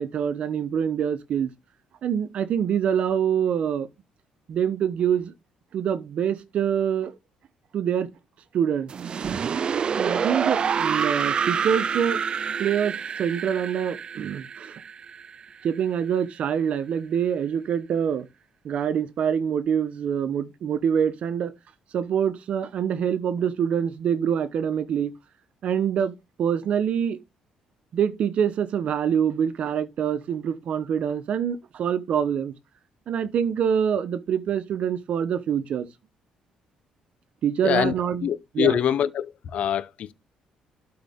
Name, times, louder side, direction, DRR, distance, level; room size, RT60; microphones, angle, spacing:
voice 1, 0.0-1.5 2.0-3.9 4.5-5.3 5.7-7.1 7.7-8.1 8.5-8.9 10.0-12.2 12.6-14.7 15.6-18.3 18.6-21.5 21.9-25.1 25.6-26.1 26.4-27.2 27.9-32.5 33.1-35.9 37.4-38.3 38.5-38.8, right 8 dB, 60° right, 1.0 m, -25 dB
sound 1, 8.9-15.8, right 7 dB, 40° right, 0.5 m, -27 dB
voice 2, 37.6-37.9 38.2-40.1, left 9 dB, 60° left, 0.8 m, -24 dB
12.0 x 4.8 x 3.7 m
cardioid pair, 110°, 2 cm